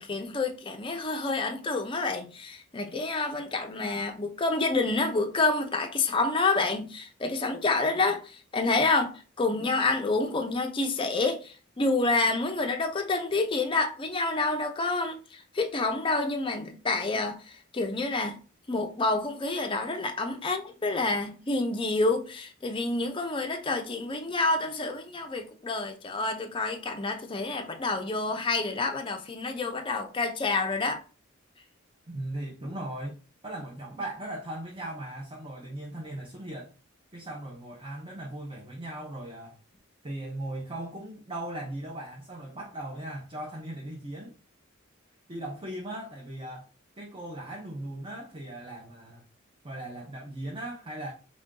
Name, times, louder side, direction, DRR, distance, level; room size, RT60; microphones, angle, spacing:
voice 1, 0.0-18.4 18.7-31.0, left 3 dB, 25° left, 0.5 m, -28 dB
voice 2, 32.1-36.7 37.1-39.6 40.0-44.3 45.3-46.7 47.0-49.2 49.6-51.1, right 1 dB, 25° right, 0.7 m, -38 dB
3.6 x 2.6 x 3.6 m
head